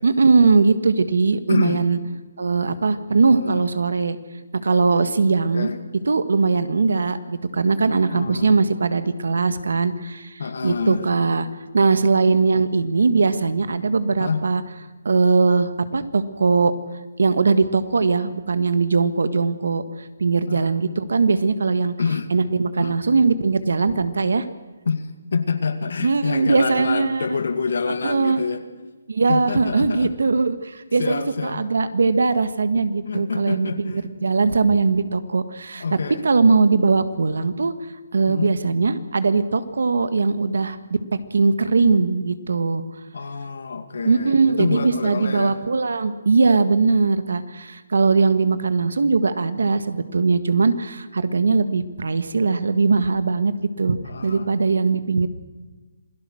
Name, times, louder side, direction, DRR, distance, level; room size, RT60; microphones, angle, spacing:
voice 1, 0.0-2.0 2.4-4.2 4.5-5.7 6.0-11.4 11.7-14.6 15.0-16.7 17.2-19.8 20.2-21.9 22.3-24.5 26.0-27.3 27.9-28.4 29.1-37.7 38.1-41.0 41.3-42.8 44.0-54.0 54.2-55.3, right 4 dB, 85° right, 12 dB, 1.7 m, -20 dB
voice 2, 1.5-1.8 3.3-3.6 5.5-5.8 8.0-8.6 10.4-11.0 11.3-11.4 12.3-12.4 14.2-14.5 20.5-20.7 22.0-22.3 22.8-23.0 24.9-28.6 29.3-30.1 31.0-31.7 33.0-34.1 35.8-36.2 38.3-38.5 43.1-45.6 54.0-54.5, left 5 dB, 70° left, 10 dB, 2.1 m, -27 dB
27.0 x 17.5 x 6.4 m, 1.3 s
hypercardioid pair, 170°, 0 cm